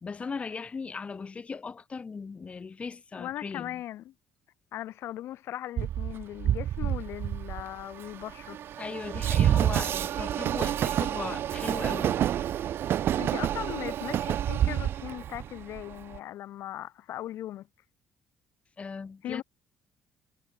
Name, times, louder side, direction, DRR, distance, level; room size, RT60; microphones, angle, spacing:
voice 1, 0.0-3.8 8.8-12.2 18.8-19.4, left 5 dB, 25° left, 2.0 m, -38 dB
voice 2, 3.2-4.1 4.7-8.6 13.2-17.7 19.2-19.4, left 13 dB, 70° left, 5.9 m, -38 dB
Train, 5.8-16.2, right 11 dB, 60° right, 1.2 m, -28 dB
cardioid pair, 120°, 5 cm